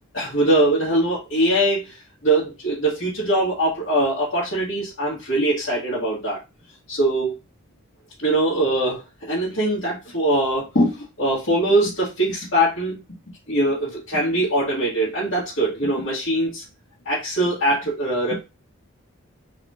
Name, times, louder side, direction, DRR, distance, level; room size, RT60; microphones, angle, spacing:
voice 1, 0.1-2.0 2.2-6.4 6.9-7.3 8.2-13.0 13.5-16.6 17.0-18.3, right 1 dB, 60° left, -9 dB, 1.7 m, -22 dB
4.0 x 2.4 x 4.2 m, 0.25 s
head